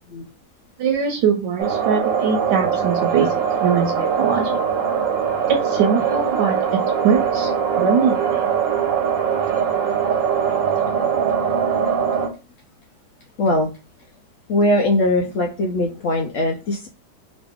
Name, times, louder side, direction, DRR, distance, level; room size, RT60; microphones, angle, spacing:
voice 1, 0.8-3.3 3.6-4.5 5.5-6.6 7.0-7.5 7.8-8.4 10.5-10.6, right 6 dB, 85° right, 3 dB, 1.2 m, -21 dB
sound 1, 1.6-12.3, right 7 dB, 60° right, 0.9 m, -21 dB
voice 2, 13.4-13.7 14.5-16.9, left 1 dB, 80° left, 2 dB, 0.7 m, -20 dB
3.0 x 2.6 x 3.5 m, 0.31 s
omnidirectional pair, 1.9 m